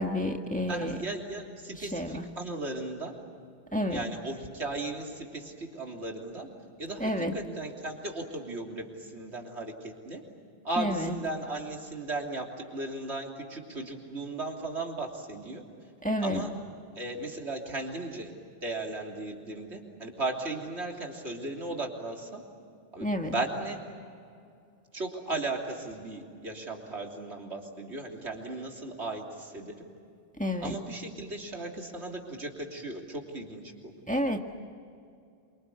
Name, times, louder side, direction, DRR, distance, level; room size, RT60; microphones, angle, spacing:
voice 1, 0.0-1.0 1.8-2.2 3.7-4.1 7.0-7.3 10.8-11.1 16.0-16.5 23.0-23.3 30.4-30.8 34.1-34.4, left 1 dB, 5° left, 3 dB, 1.6 m, -30 dB
voice 2, 0.7-3.2 3.9-6.5 6.8-10.2 10.6-12.5 12.7-15.6 16.2-16.5 16.9-18.3 18.6-22.4 22.9-23.8 24.9-29.9 30.6-33.9, right 2 dB, 80° right, 1 dB, 3.5 m, -36 dB
27.0 x 25.0 x 8.4 m, 2.4 s
omnidirectional pair, 1.1 m